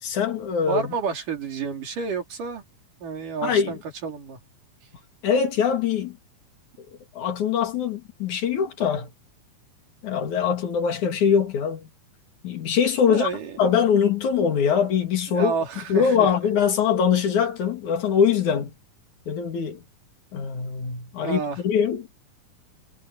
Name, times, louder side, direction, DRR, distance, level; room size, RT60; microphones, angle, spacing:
voice 1, 0.0-0.9 3.4-3.8 5.2-6.2 7.1-9.1 10.0-11.9 12.4-13.3 13.6-15.5 15.9-18.7 19.3-19.8 20.3-22.0, left 7 dB, 65° left, 3.6 m, -22 dB
voice 2, 0.7-2.6 3.0-4.4 13.1-13.6 15.3-16.3 21.2-21.6, right 5 dB, 75° right, 4.9 m, -30 dB
omnidirectional pair, 3.8 m